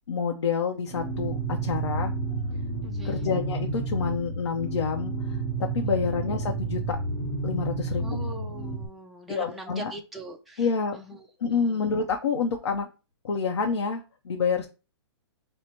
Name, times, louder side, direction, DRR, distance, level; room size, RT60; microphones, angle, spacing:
voice 1, 0.1-2.1 3.0-5.4 5.7-7.0 7.4-8.2 9.3-9.9 10.6-11.0 11.4-12.9 13.2-14.7, left 5 dB, 75° left, 2 dB, 0.7 m, -28 dB
sound 1, 0.9-8.9, right 2 dB, 30° left, 1.2 m, -31 dB
voice 2, 2.8-3.3 6.0-6.1 8.0-10.7 10.9-11.9, right 1 dB, ahead, 0 dB, 0.3 m, -42 dB
5.2 x 2.1 x 4.3 m, 0.31 s
hypercardioid pair, 150°, 15 cm